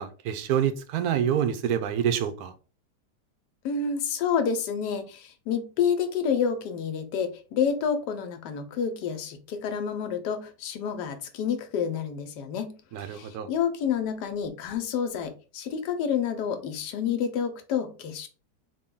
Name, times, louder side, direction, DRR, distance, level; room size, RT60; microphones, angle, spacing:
voice 1, 0.0-2.5 12.9-13.5, right 9 dB, 70° right, 10 dB, 1.0 m, -27 dB
voice 2, 3.6-18.3, left 7 dB, 75° left, 7 dB, 1.2 m, -29 dB
3.7 x 2.2 x 3.6 m, 0.35 s
omnidirectional pair, 1.8 m